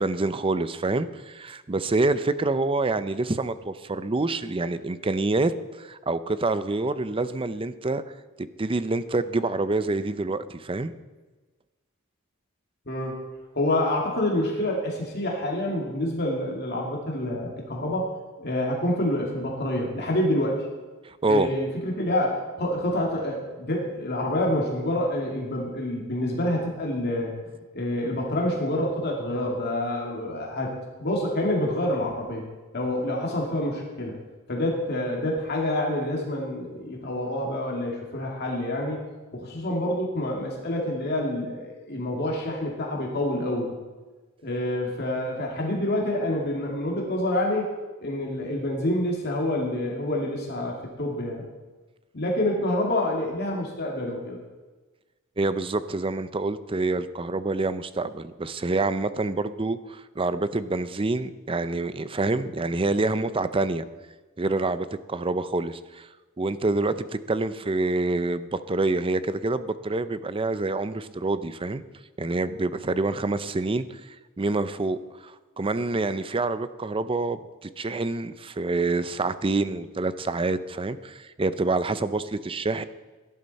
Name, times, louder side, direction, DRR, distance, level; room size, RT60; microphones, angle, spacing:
voice 1, 0.0-8.0 8.4-10.9 21.0-21.5 55.4-63.8 64.4-66.1 66.4-71.8 72.2-74.0 74.4-82.8, right 3 dB, 25° right, 13 dB, 0.5 m, -27 dB
voice 2, 12.9-13.2 13.5-18.1 18.4-20.7 21.3-27.3 27.7-32.5 32.7-34.2 34.5-39.0 39.3-43.7 44.4-47.7 48.0-51.4 52.1-54.4, left 1 dB, 50° left, -1 dB, 2.4 m, -27 dB
17.0 x 11.0 x 4.2 m, 1.2 s
head